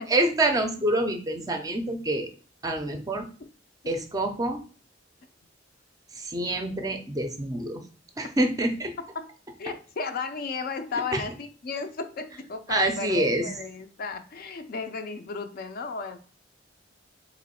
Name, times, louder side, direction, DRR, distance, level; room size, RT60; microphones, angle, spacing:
voice 1, 0.1-2.3 2.6-3.3 3.9-4.6 6.2-7.8 8.2-9.0 11.1-11.2 12.7-13.5, right 1 dB, 20° right, 6 dB, 0.4 m, -26 dB
voice 2, 9.6-16.2, left 4 dB, 50° left, 8 dB, 0.4 m, -34 dB
3.0 x 2.9 x 4.2 m, 0.40 s
head